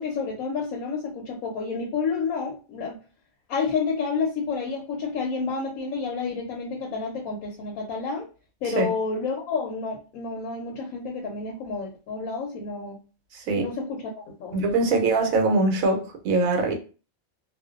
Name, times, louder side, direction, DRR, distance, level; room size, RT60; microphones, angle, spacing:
voice 1, 0.0-3.0 3.5-8.3 8.6-13.0 13.5-15.1, left 4 dB, 90° left, 1.0 m, -30 dB
voice 2, 13.3-13.7 14.5-16.8, right 3 dB, 80° right, 1.1 m, -23 dB
2.5 x 2.1 x 2.3 m
omnidirectional pair, 1.4 m